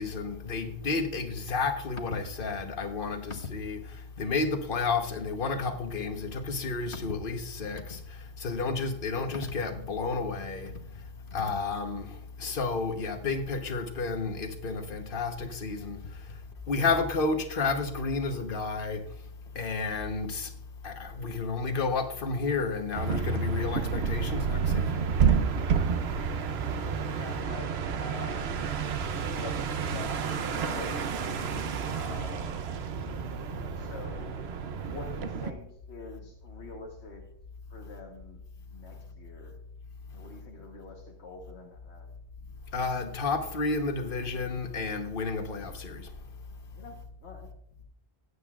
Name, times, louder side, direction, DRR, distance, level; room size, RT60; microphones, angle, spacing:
voice 1, 0.0-10.7 11.3-16.2 16.7-19.0 19.5-20.5 20.8-25.0 42.7-46.1, left 4 dB, 55° left, 1.3 m, -31 dB
sound 1, 23.0-35.5, right 6 dB, 70° right, 1.0 m, -30 dB
voice 2, 27.1-27.7 28.0-28.4 29.1-31.1 31.9-32.7 33.8-34.5 34.8-37.2 37.7-38.4 38.7-39.5 40.1-42.1 46.7-47.5, left 3 dB, 90° left, 1.6 m, -45 dB
16.0 x 9.0 x 2.4 m
omnidirectional pair, 1.1 m